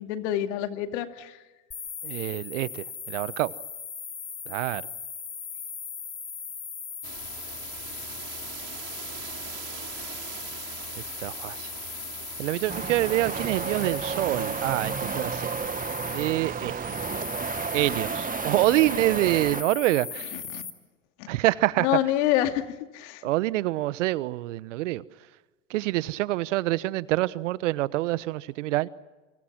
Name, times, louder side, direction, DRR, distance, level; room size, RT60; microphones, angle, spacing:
voice 1, 0.0-1.4 20.3-20.6 21.2-21.3 21.8-23.3, left 12 dB, 65° left, 2.5 m, -27 dB
sound 1, 1.7-20.7, left 6 dB, 30° left, 3.8 m, -38 dB
voice 2, 2.0-3.5 4.5-4.8 11.2-11.7 12.4-15.5 16.1-17.0 17.7-20.4 21.3-21.9 23.2-25.0 25.7-28.9, right 17 dB, 75° right, 1.1 m, -26 dB
sound 2, 7.0-18.0, right 13 dB, 55° right, 3.4 m, -43 dB
sound 3, 12.7-19.6, right 7 dB, 20° right, 1.2 m, -32 dB
28.5 x 26.0 x 6.1 m
hypercardioid pair, 90°, 38 cm